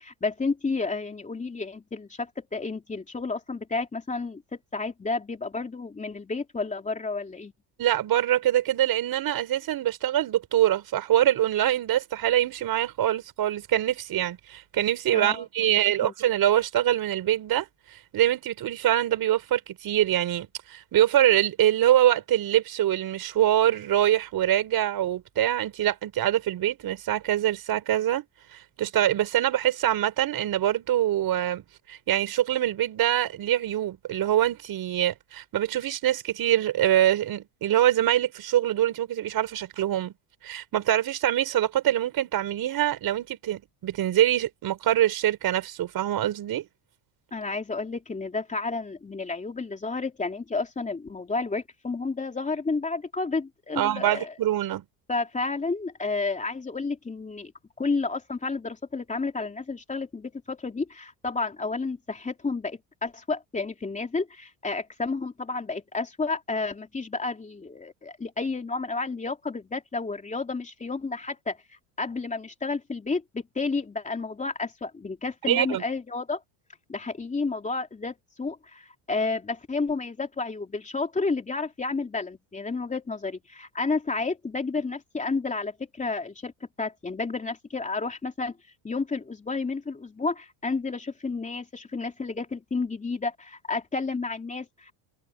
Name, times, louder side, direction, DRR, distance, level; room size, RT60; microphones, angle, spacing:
voice 1, 0.0-7.5 15.1-15.4 16.0-16.1 47.3-54.3 55.1-57.5 57.8-71.6 72.0-76.4 76.9-86.5 86.8-88.6 88.8-94.9, left 3 dB, 15° left, 3.1 m, -31 dB
voice 2, 7.8-17.7 18.1-28.2 28.5-31.6 31.9-40.1 40.4-46.7 53.8-54.8 75.4-75.8, right 12 dB, 45° right, 5.5 m, -24 dB
cardioid pair, 135°, 47 cm